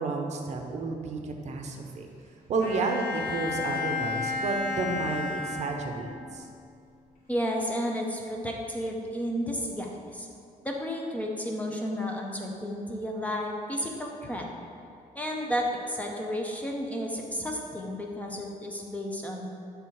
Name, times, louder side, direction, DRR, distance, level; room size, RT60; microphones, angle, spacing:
voice 1, 0.0-2.1 2.5-6.5, right 3 dB, 50° right, 3 dB, 0.6 m, -31 dB
Bowed string instrument, 2.6-6.3, left 4 dB, 75° left, 1.4 m, -32 dB
voice 2, 7.3-10.3 10.6-14.5 15.1-19.5, equal, 10° left, 0 dB, 0.5 m, -32 dB
7.7 x 3.3 x 4.6 m, 2.4 s
wide cardioid pair, 180°, 15 cm